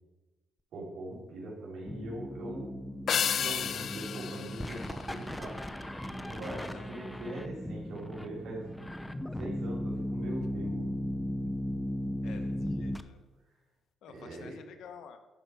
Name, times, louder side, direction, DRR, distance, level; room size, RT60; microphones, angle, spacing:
voice 1, 0.7-2.7 3.1-5.6 6.2-8.7 9.3-10.9 12.2-12.3 14.1-14.5, right 1 dB, 75° right, -4 dB, 3.7 m, -42 dB
sound 1, 1.9-13.0, left 1 dB, 5° left, 0.6 m, -37 dB
sound 2, 3.1-5.7, left 8 dB, 60° left, 0.4 m, -33 dB
voice 2, 6.5-6.9 10.4-10.5 12.2-13.2 14.0-15.2, left 7 dB, 75° left, 7 dB, 1.1 m, -50 dB
11.5 x 5.1 x 6.2 m, 1.1 s
cardioid pair, 90°, 0 cm